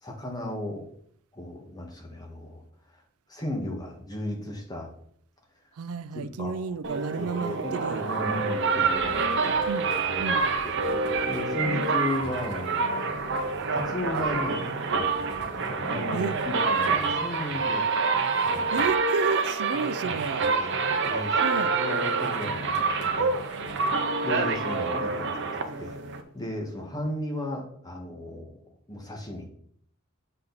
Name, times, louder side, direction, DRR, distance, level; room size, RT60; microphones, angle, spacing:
voice 1, 0.0-0.8 1.3-2.6 3.3-4.9 6.1-6.6 7.2-9.3 10.0-10.8 11.3-15.1 15.6-17.9 20.0-20.1 20.5-20.7 21.1-23.4 24.0-25.4 25.8-26.0 26.3-28.5 28.9-29.5, left 1 dB, 20° left, 1.3 m, -35 dB
voice 2, 5.8-8.0 9.5-9.9 10.2-10.5 11.6-11.8 16.1-16.4 18.7-20.5 21.4-21.7, right 5 dB, 85° right, 0.4 m, -32 dB
sound 1, 6.8-26.2, right 4 dB, 55° right, 0.7 m, -27 dB
sound 2, 7.6-8.2 8.5-19.2 19.6-21.4 21.9-24.6, equal, 55° left, 1.8 m, -48 dB
7.7 x 4.4 x 3.9 m
head